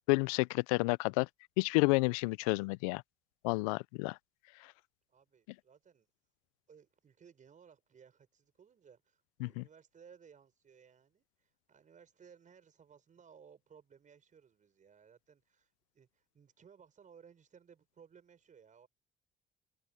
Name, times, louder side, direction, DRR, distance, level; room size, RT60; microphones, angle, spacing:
voice 1, 0.1-1.3 1.6-3.0 3.4-4.2 9.4-9.6, left 27 dB, 90° left, 0.4 m, -30 dB
voice 2, 5.1-6.1 6.7-18.9, right 7 dB, 45° right, 5.9 m, -61 dB
open air
hypercardioid pair, 65°, 18 cm